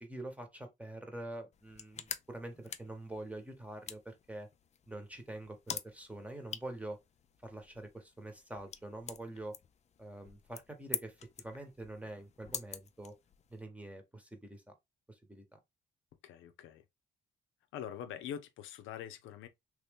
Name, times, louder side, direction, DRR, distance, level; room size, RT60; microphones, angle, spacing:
voice 1, 0.0-4.5 4.9-7.0 7.4-9.6 10.0-13.1 13.5-14.6 15.1-15.6, right 1 dB, 5° right, 1.0 m, -45 dB
sound 1, 1.5-13.6, left 7 dB, 35° left, 0.4 m, -47 dB
voice 2, 16.2-16.8 17.7-19.5, left 9 dB, 85° left, 0.6 m, -44 dB
3.1 x 2.8 x 3.5 m
cardioid pair, 90°, 20 cm